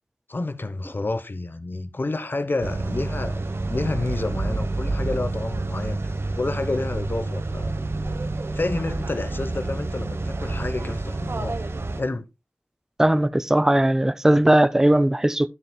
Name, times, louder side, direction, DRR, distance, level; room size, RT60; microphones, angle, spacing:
voice 1, 0.3-7.7 8.5-11.6 12.0-12.3, left 2 dB, 55° left, 0.9 m, -29 dB
sound 1, 2.6-12.0, right 2 dB, 70° right, 1.0 m, -28 dB
voice 2, 13.0-15.5, right 1 dB, 10° right, 0.4 m, -18 dB
10.5 x 9.7 x 2.2 m
wide cardioid pair, 65°, 4 cm